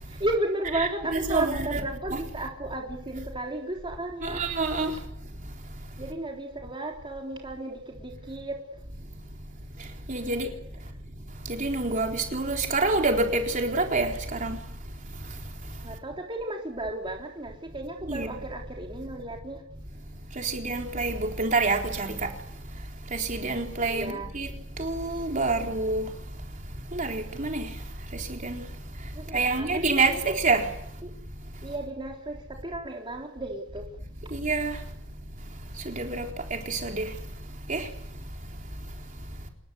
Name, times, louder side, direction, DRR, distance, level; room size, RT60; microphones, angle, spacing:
voice 1, 0.2-4.4 6.0-8.6 15.8-19.6 23.8-24.3 29.2-30.2 31.0-31.1 31.6-33.8, right 1 dB, 25° right, 3.5 m, -34 dB
voice 2, 1.1-1.8 4.3-4.9 10.1-10.5 11.6-14.1 14.4-14.6 18.1-18.3 20.5-22.1 23.3-24.0 24.4-24.5 24.8-26.0 27.0-27.6 28.4-28.6 29.3-30.6 34.3-34.7 36.0-36.2 36.7-37.0 37.7-37.8, right 3 dB, 40° right, 3.9 m, -26 dB
27.0 x 21.0 x 8.2 m
head